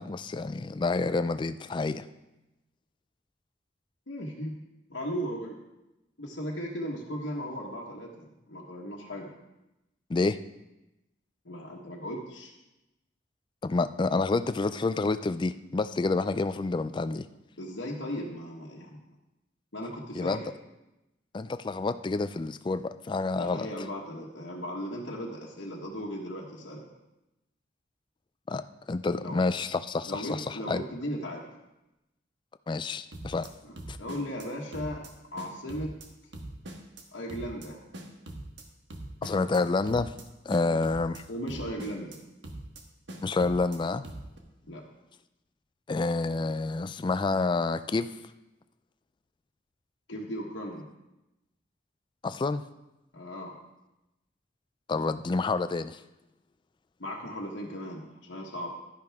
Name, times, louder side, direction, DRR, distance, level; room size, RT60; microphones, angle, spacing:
voice 1, 0.0-2.0 10.1-10.4 13.6-17.3 20.1-20.4 21.3-23.7 28.5-30.8 32.7-33.5 33.9-34.0 39.2-40.1 40.5-41.2 43.2-44.1 45.9-48.1 52.2-52.6 54.9-56.0, left 3 dB, 25° left, 12 dB, 0.3 m, -28 dB
voice 2, 4.1-4.6 4.9-5.6 6.2-9.3 11.4-12.5 17.6-19.0 19.7-20.5 23.3-26.8 29.2-29.4 30.1-31.4 33.6-33.7 34.0-35.0 35.3-35.9 37.1-37.8 40.6-40.8 41.3-42.2 44.7-44.8 50.1-50.9 53.1-53.5 57.0-58.7, equal, 80° left, -3 dB, 1.4 m, -37 dB
sound 1, 33.1-33.5 33.8-34.5 34.7-35.1 35.4-36.1 36.3-37.0 37.3-37.7 37.9-38.6 38.9-39.6 39.9-40.2 40.5-41.2 41.5-42.2 42.4-42.8 43.1-43.8 44.0-44.4, right 1 dB, 70° right, 1.4 m, -42 dB
11.5 x 10.5 x 3.6 m, 0.95 s
head